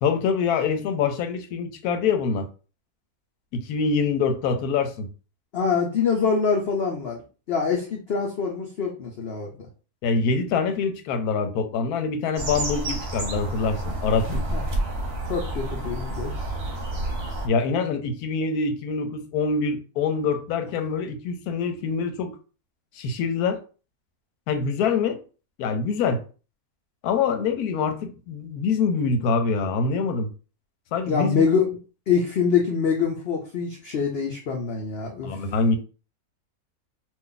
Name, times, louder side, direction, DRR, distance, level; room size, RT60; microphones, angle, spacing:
voice 1, 0.0-2.5 3.5-5.1 10.0-14.5 17.4-22.4 22.9-23.6 24.5-25.2 25.6-26.2 27.0-30.3 30.9-31.5 35.2-35.8, left 5 dB, 85° left, 1.1 m, -25 dB
voice 2, 5.5-7.2 7.5-9.7 14.5-14.6 15.3-16.3 31.1-31.7 32.1-35.4, left 6 dB, 60° left, 0.6 m, -24 dB
sound 1, 12.4-17.5, right 1 dB, 50° right, 0.9 m, -29 dB
2.6 x 2.4 x 3.7 m
omnidirectional pair, 1.6 m